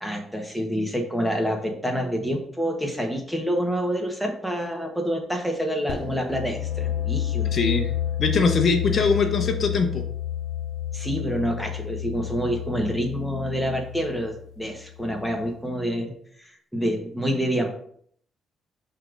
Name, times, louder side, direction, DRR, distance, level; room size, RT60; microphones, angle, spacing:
voice 1, 0.0-7.5 10.9-16.1 16.4-17.7, equal, ahead, 1 dB, 1.5 m, -27 dB
sound 1, 5.9-15.5, left 11 dB, 80° left, 0.5 m, -30 dB
voice 2, 7.5-7.9 8.2-10.1, left 4 dB, 50° left, 4 dB, 0.9 m, -22 dB
5.8 x 3.3 x 5.2 m, 0.63 s
cardioid pair, 90°, 0 cm